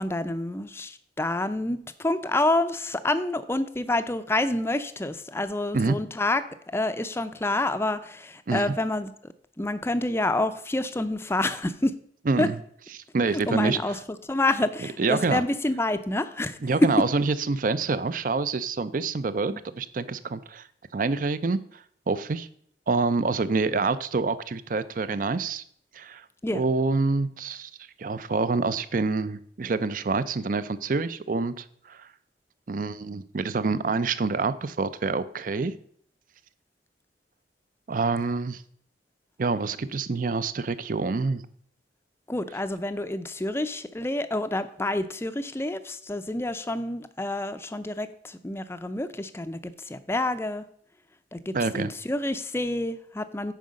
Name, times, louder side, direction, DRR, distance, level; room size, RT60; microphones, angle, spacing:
voice 1, 0.0-6.4 6.7-9.3 9.6-11.9 12.4-12.5 13.3-14.0 14.3-16.6 26.4-26.6 42.3-50.6 51.3-53.5, left 2 dB, 15° left, 12 dB, 0.5 m, -28 dB
voice 2, 12.3-12.6 12.9-14.0 15.0-15.4 16.6-20.7 20.9-22.5 22.9-25.6 25.9-26.2 26.5-27.7 28.0-32.1 32.7-35.7 37.9-38.6 39.4-41.4 51.5-51.9, right 4 dB, 50° right, 15 dB, 0.5 m, -27 dB
9.2 x 4.8 x 6.3 m, 0.64 s
head